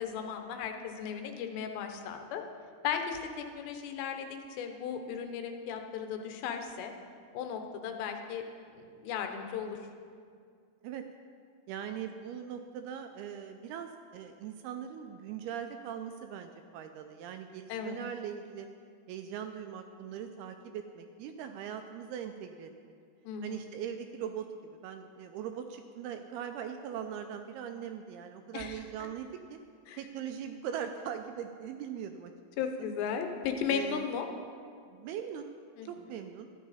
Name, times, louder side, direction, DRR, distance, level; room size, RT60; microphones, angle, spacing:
voice 1, 0.0-2.4 2.8-6.9 7.3-8.5 8.7-9.8 17.7-18.0 23.3-23.6 28.5-28.8 29.9-30.0 32.6-34.3 35.8-35.9, left 7 dB, 85° left, 5 dB, 3.0 m, -36 dB
voice 2, 11.7-18.7 19.1-22.9 23.4-29.6 30.0-32.3 33.7-34.1 34.9-35.5 35.8-36.5, right 8 dB, 85° right, 6 dB, 2.3 m, -40 dB
13.5 x 11.0 x 4.1 m, 2.2 s
omnidirectional pair, 4.9 m